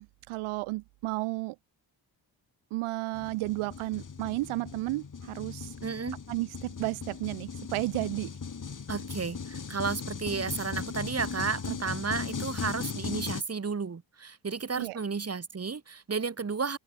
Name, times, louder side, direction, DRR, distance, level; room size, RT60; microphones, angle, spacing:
voice 1, 0.0-1.5 2.7-5.7 6.3-8.3 11.7-11.8 14.8-15.0, right 21 dB, 80° right, 0.8 m, -33 dB
sound 1, 3.1-13.4, left 5 dB, 40° left, 3.0 m, -38 dB
voice 2, 5.8-6.2 8.9-16.8, right 5 dB, 30° right, 2.0 m, -33 dB
open air
supercardioid pair, 55°, 48 cm